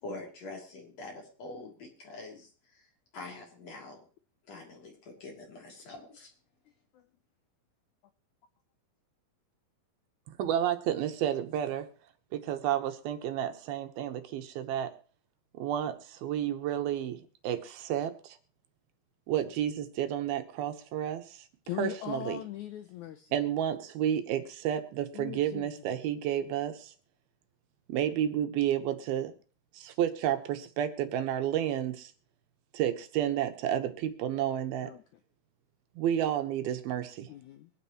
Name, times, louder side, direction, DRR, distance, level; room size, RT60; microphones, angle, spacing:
voice 1, 0.0-4.1 4.4-6.3, left 2 dB, 45° left, -1 dB, 4.1 m, -45 dB
voice 2, 10.4-11.9 12.3-14.9 15.5-18.4 19.3-21.4 21.8-22.4 23.3-26.9 27.9-29.3 29.7-32.1 32.7-34.9 36.0-37.3, right 10 dB, 85° right, 8 dB, 2.9 m, -31 dB
voice 3, 21.7-23.3 25.1-25.7 34.8-35.0 37.3-37.7, left 13 dB, 80° left, 8 dB, 1.7 m, -39 dB
24.0 x 9.1 x 3.1 m, 0.40 s
omnidirectional pair, 4.3 m